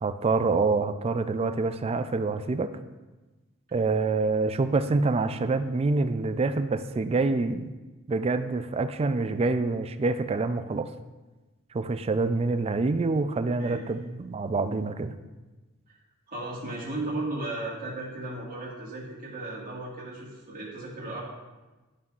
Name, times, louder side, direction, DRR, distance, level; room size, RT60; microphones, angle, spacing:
voice 1, 0.0-2.7 3.7-7.7 8.1-10.9 11.7-15.1, right 3 dB, 30° right, 10 dB, 0.3 m, -26 dB
voice 2, 16.3-21.2, right 2 dB, 45° right, -7 dB, 1.8 m, -35 dB
11.5 x 5.4 x 2.4 m, 1.2 s
head